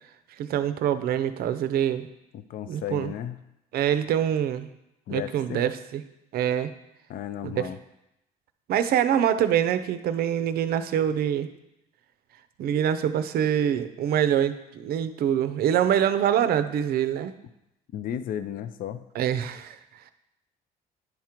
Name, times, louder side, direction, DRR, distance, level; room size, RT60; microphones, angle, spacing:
voice 1, 0.4-2.1 2.7-3.1 3.7-4.7 5.1-6.0 6.3-6.7 7.4-7.7 8.7-11.5 12.6-17.3 19.2-19.8, right 9 dB, 65° right, 12 dB, 0.5 m, -25 dB
voice 2, 2.3-3.4 5.1-5.7 7.1-7.8 17.9-19.0, left 10 dB, 55° left, 12 dB, 0.5 m, -34 dB
9.8 x 3.6 x 4.4 m, 0.86 s
cardioid pair, 110°, 17 cm